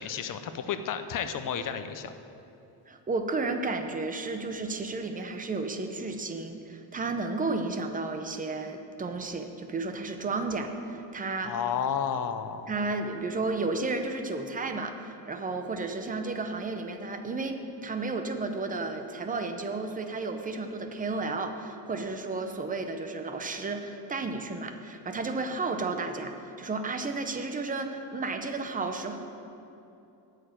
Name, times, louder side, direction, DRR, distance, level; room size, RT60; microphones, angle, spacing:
voice 1, 0.0-2.1 11.4-12.7, left 7 dB, 45° left, 9 dB, 0.6 m, -32 dB
voice 2, 2.9-11.5 12.7-29.2, right 3 dB, 20° right, 6 dB, 0.6 m, -32 dB
9.4 x 6.6 x 8.9 m, 2.8 s
cardioid pair, 170°, 47 cm